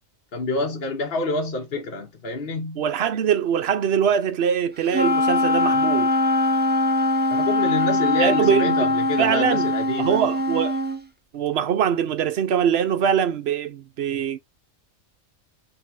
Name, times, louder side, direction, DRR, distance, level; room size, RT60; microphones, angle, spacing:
voice 1, 0.3-2.8 7.3-10.2, left 2 dB, 50° left, 1.0 m, -27 dB
voice 2, 2.8-6.1 8.2-8.8 9.2-9.7 10.0-10.8 11.3-14.4, right 8 dB, 60° right, 0.8 m, -22 dB
Wind instrument woodwind instrument, 4.9-11.0, left 1 dB, 15° right, 0.3 m, -22 dB
5.7 x 2.8 x 3.3 m
omnidirectional pair, 1.3 m